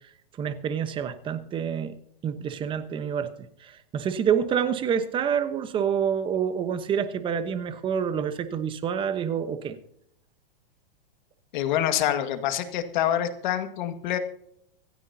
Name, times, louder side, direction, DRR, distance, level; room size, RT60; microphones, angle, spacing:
voice 1, 0.4-2.0 2.2-3.3 3.6-9.7, right 8 dB, 15° right, 1.0 m, -27 dB
voice 2, 11.5-14.2, left 11 dB, 55° left, 1.9 m, -26 dB
25.5 x 9.7 x 2.8 m
hypercardioid pair, 150°, 29 cm